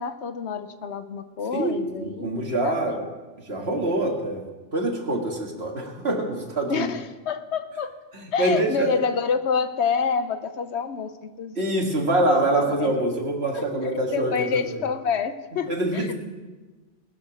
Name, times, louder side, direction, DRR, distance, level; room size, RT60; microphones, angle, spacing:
voice 1, 0.0-2.3 2.6-3.1 6.7-7.9 8.3-11.7 12.5-13.1 13.5-16.1, left 6 dB, 70° left, 10 dB, 1.0 m, -28 dB
voice 2, 1.5-3.0 3.5-4.4 4.7-6.9 8.1-8.9 11.6-14.8 15.7-16.1, right 1 dB, 60° right, 1 dB, 2.2 m, -25 dB
20.0 x 6.8 x 6.3 m, 1.3 s
omnidirectional pair, 1.2 m